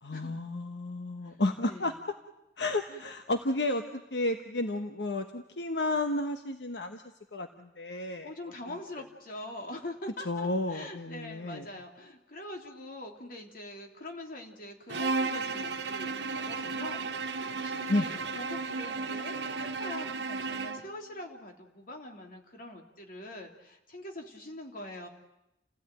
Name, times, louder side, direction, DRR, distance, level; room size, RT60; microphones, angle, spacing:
voice 1, 0.0-1.9 2.6-7.0 7.3-8.3 10.3-11.6 17.9-18.1, left 2 dB, 80° left, 6 dB, 1.3 m, -32 dB
voice 2, 1.6-2.0 2.9-3.1 7.8-25.1, left 1 dB, 55° left, 2 dB, 3.3 m, -44 dB
Bowed string instrument, 14.9-20.9, right 4 dB, 80° right, 1.2 m, -34 dB
30.0 x 16.5 x 9.1 m, 0.92 s
head